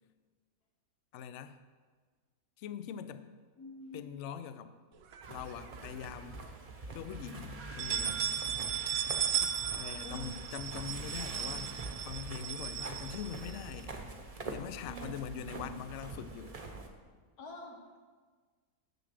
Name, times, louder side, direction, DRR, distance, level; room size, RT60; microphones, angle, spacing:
voice 1, 1.1-1.6 2.6-3.3 3.9-4.8 5.3-6.5 6.9-8.3 9.4-14.0 14.5-16.6, left 8 dB, 65° left, 11 dB, 0.8 m, -43 dB
voice 2, 3.6-4.1 10.0-10.3 14.8-15.9 17.4-18.0, left 1 dB, 85° left, 2 dB, 1.8 m, -47 dB
sound 1, 5.1-6.0 6.5-6.6 6.9-7.0 7.6-13.8, right 9 dB, 70° right, 1.0 m, -36 dB
sound 2, 5.2-16.9, right 3 dB, 30° right, 0.7 m, -45 dB
7.6 x 6.8 x 6.5 m, 1.5 s
omnidirectional pair, 1.6 m